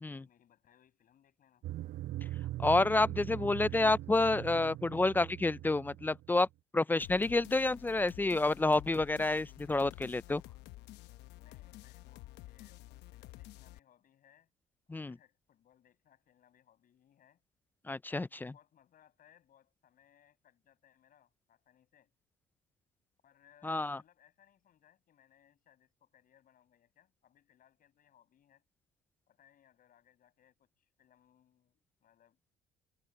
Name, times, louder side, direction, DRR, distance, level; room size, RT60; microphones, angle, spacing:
voice 1, 0.1-1.7 3.3-3.8 11.3-14.5 14.9-17.4 18.1-22.1 23.2-28.6 29.3-32.6, left 10 dB, 55° left, 7.9 m, -67 dB
sound 1, 1.6-6.4, right 15 dB, 55° right, 0.5 m, -41 dB
voice 2, 2.6-6.5 6.7-10.4 14.9-15.1 17.9-18.5 23.6-24.0, left 2 dB, 10° left, 0.3 m, -29 dB
sound 2, 7.0-13.8, left 16 dB, 85° left, 0.8 m, -51 dB
cardioid pair, 110°, 17 cm